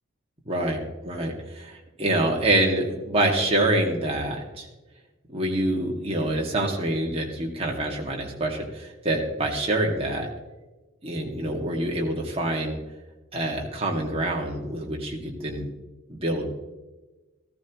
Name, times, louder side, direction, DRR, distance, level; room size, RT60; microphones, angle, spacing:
voice 1, 0.5-4.7 5.3-10.3 11.0-12.8 13.3-15.7 16.1-16.5, right 1 dB, 25° right, -1 dB, 2.1 m, -26 dB
15.5 x 14.5 x 3.1 m, 1.1 s
head